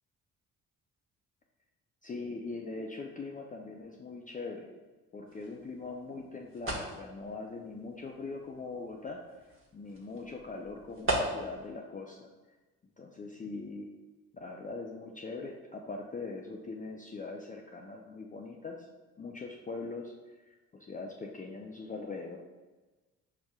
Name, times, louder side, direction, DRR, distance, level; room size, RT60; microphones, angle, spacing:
voice 1, 2.0-4.7 5.1-9.5 9.7-12.3 13.0-13.9 14.3-18.8 19.2-22.4, left 3 dB, 20° left, 0 dB, 0.5 m, -41 dB
sound 1, 5.3-11.7, right 1 dB, 30° right, 1.3 m, -39 dB
5.9 x 2.7 x 2.3 m, 1.2 s
hypercardioid pair, 50°, 40 cm